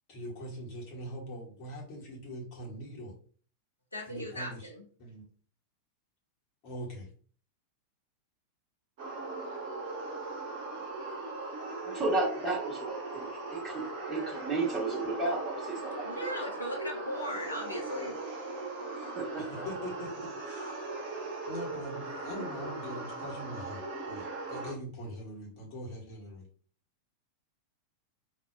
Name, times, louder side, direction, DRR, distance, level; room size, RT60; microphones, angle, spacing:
voice 1, 0.1-3.1 4.1-4.7 5.0-5.2 6.6-7.1 19.3-20.8 21.5-26.5, equal, 40° left, -2 dB, 1.3 m, -42 dB
voice 2, 3.9-4.8 16.0-18.2, equal, 80° left, 1 dB, 0.8 m, -37 dB
sound 1, 9.0-24.7, right 3 dB, 45° right, 1.1 m, -39 dB
voice 3, 11.8-16.3 18.9-19.6, right 2 dB, 15° right, -4 dB, 1.6 m, -33 dB
3.9 x 2.7 x 2.2 m, 0.44 s
figure-of-eight pair, 90°, 0 cm